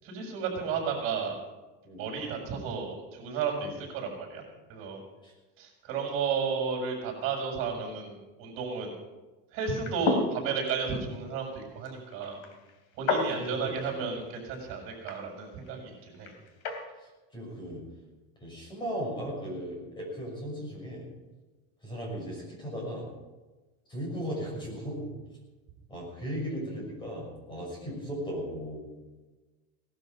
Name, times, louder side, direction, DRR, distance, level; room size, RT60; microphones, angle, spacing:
voice 1, 0.0-1.4 2.0-4.4 4.7-5.0 5.6-8.9 9.5-12.4 13.0-16.3, right 5 dB, 45° right, 0 dB, 6.3 m, -33 dB
sound 1, 9.7-16.9, left 3 dB, 70° left, 2.9 m, -35 dB
voice 2, 13.1-14.0 17.0-17.8 18.4-21.0 21.8-23.1 23.9-25.1 25.9-28.9, equal, 15° left, -2 dB, 6.1 m, -37 dB
18.5 x 12.5 x 5.5 m, 1.2 s
cardioid pair, 170°, 30 cm